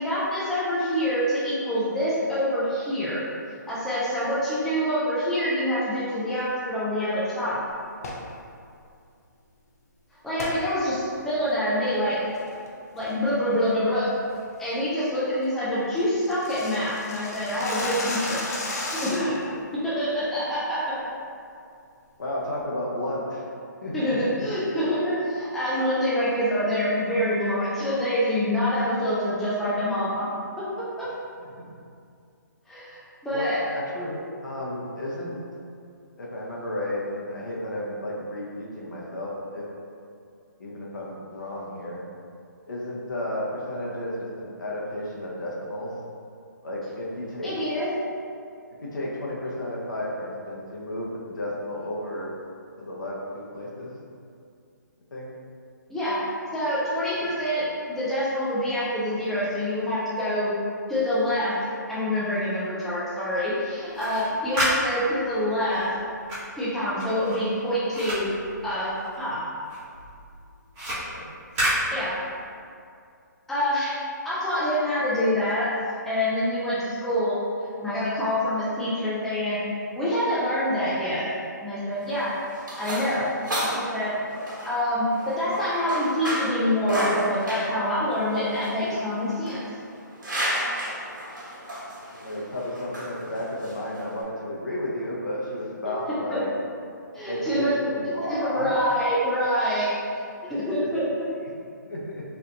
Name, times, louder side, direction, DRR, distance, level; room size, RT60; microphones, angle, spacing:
voice 1, 0.0-3.2 3.7-7.7 10.2-12.2 12.9-14.1 14.6-18.4 18.9-19.4 19.7-20.9 23.9-30.3 30.6-31.1 32.7-32.9 33.2-33.6 47.4-47.9 55.9-56.2 56.5-60.5 60.9-61.5 61.9-65.9 66.6-68.3 68.6-69.4 71.9-72.1 73.5-73.9 74.2-75.7 76.0-77.4 77.8-79.6 80.0-81.2 81.6-82.3 82.8-83.2 83.6-84.1 84.6-89.6 96.1-96.4 97.1-97.8 98.0-99.9 100.4-101.3, equal, 5° left, -10 dB, 0.5 m, -26 dB
sound 1, 7.9-8.3 10.4-10.6 11.1-11.2 11.7-12.0 12.3-12.7 13.0-13.3 13.6-13.7 14.1-14.4 14.7-14.8 15.1-15.2 15.4-15.5 15.8-19.4, left 2 dB, 50° left, 0.7 m, -33 dB
voice 2, 22.2-23.5 23.8-24.2 33.3-35.4 36.2-39.6 40.6-42.0 42.7-46.0 46.6-47.5 48.8-52.3 52.8-54.0 55.1-55.3 70.9-71.3 92.1-96.5 97.2-98.7 100.7-101.1 101.8-102.2, left 1 dB, 75° left, -5 dB, 1.0 m, -33 dB
sound 2, 63.8-69.3 69.6-72.6, equal, 20° right, 1.5 m, -31 dB
sound 3, 81.9-94.2, equal, 90° right, 1.1 m, -32 dB
3.9 x 3.3 x 2.6 m, 2.4 s
hypercardioid pair, 155°, 10 cm